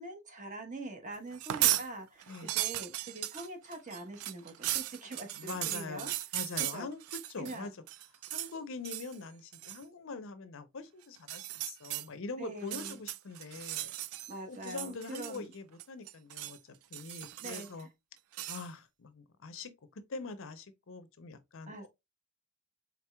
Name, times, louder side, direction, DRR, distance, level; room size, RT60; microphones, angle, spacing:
voice 1, 0.0-6.1 6.6-6.9 7.4-7.7 12.4-13.0 14.3-15.5 17.4-17.9 21.7-21.9, right 2 dB, 35° right, 1.0 m, -44 dB
sound 1, 1.3-1.9 2.2-7.6 7.9-8.5 8.8-9.2 9.5-9.8 11.2-12.1 12.6-14.3 14.6-15.5 15.8-16.6 16.9-17.8 18.3-18.7, right 14 dB, 70° right, 0.3 m, -36 dB
voice 2, 5.4-7.7 8.3-13.9 14.5-16.6 16.9-17.9 18.5-19.7 20.1-21.9, left 4 dB, 60° left, 0.6 m, -43 dB
4.4 x 4.0 x 2.2 m
head